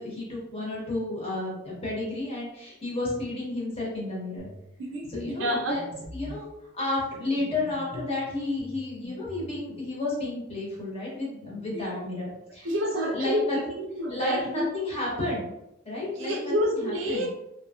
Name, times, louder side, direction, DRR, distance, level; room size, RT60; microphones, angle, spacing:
voice 1, 0.0-4.5 5.1-5.8 6.1-6.5 6.7-12.7 12.9-13.6 14.1-15.5 15.8-17.2, left 2 dB, 30° left, -5 dB, 1.0 m, -32 dB
sound 1, 4.4-4.6 5.0-5.2 5.7-6.5 7.4-8.1 8.6-9.5, left 1 dB, 90° left, 0.8 m, -43 dB
voice 2, 4.8-5.8 11.7-12.0 12.6-14.7 16.2-17.3, equal, 70° right, -1 dB, 0.5 m, -29 dB
2.8 x 2.7 x 2.3 m, 0.88 s
head